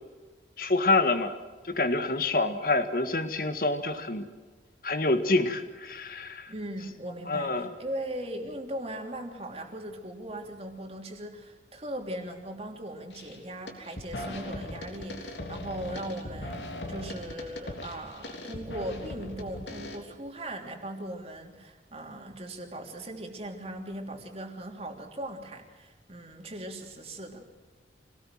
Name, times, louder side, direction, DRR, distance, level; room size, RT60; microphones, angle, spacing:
voice 1, 0.6-1.4 1.6-4.3 4.8-6.5 7.3-7.7, left 2 dB, 55° left, 8 dB, 1.9 m, -27 dB
voice 2, 6.5-27.4, right 1 dB, 35° right, 2 dB, 3.2 m, -39 dB
sound 1, 13.1-13.4 13.7-20.0, left 1 dB, 90° left, 3.6 m, -39 dB
26.5 x 18.5 x 7.6 m, 1.3 s
head